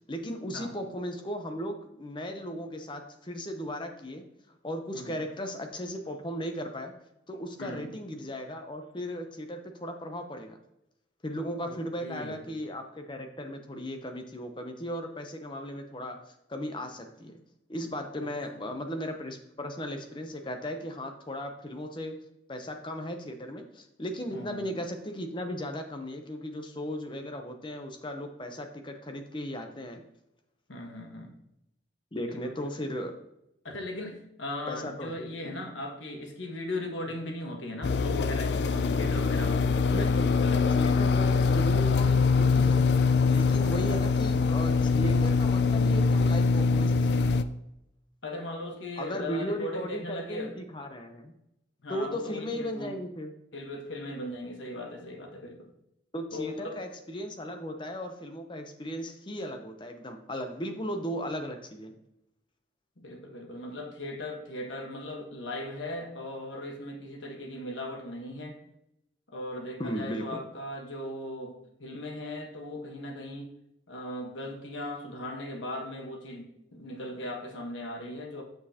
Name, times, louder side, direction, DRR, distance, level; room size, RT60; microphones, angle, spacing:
voice 1, 0.1-4.3 4.6-6.9 7.3-10.6 11.2-16.2 16.5-17.4 17.7-22.2 22.5-30.0 32.1-33.1 34.7-35.2 39.9-40.4 40.8-42.9 43.3-47.1 49.0-51.3 51.9-53.3 56.1-61.9 69.8-70.4, equal, 25° left, 5 dB, 0.7 m, -36 dB
voice 2, 7.6-7.9 11.7-12.4 18.5-18.6 24.3-24.7 30.7-31.3 32.3-32.5 33.6-40.1 40.4-40.9 43.9-44.0 48.2-50.5 51.8-52.9 53.5-55.7 56.3-56.8 63.0-68.6 69.3-73.5 73.9-78.4, left 1 dB, 90° left, 3 dB, 1.3 m, -38 dB
sound 1, 37.8-47.4, left 4 dB, 65° left, 0.4 m, -23 dB
7.4 x 6.3 x 2.9 m, 0.82 s
head